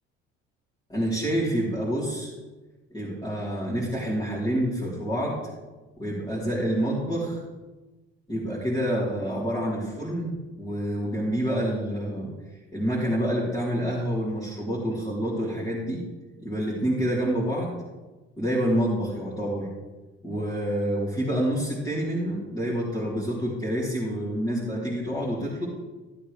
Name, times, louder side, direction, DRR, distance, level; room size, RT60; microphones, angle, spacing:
voice 1, 0.9-2.3 2.9-5.4 6.0-7.4 8.3-12.3 12.7-16.0 16.4-17.8 18.4-19.7 20.2-25.7, equal, 15° left, -9 dB, 4.3 m, -27 dB
15.0 x 8.5 x 3.6 m, 1.2 s
hypercardioid pair, 65°, 32 cm